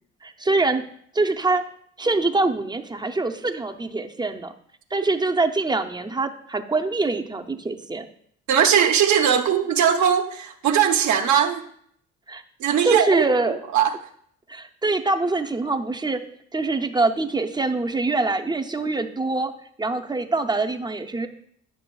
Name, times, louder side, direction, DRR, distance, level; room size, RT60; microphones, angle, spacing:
voice 1, 0.2-0.8 1.1-1.6 2.0-4.5 4.9-8.0 12.3-12.4 12.8-13.6 14.5-16.2 16.5-19.5 19.8-21.3, right 3 dB, 15° right, 6 dB, 0.5 m, -24 dB
voice 2, 8.5-11.6 12.6-13.2 13.7-13.9, right 8 dB, 70° right, 3 dB, 0.7 m, -19 dB
10.0 x 5.8 x 2.3 m, 0.66 s
cardioid pair, 90°, 30 cm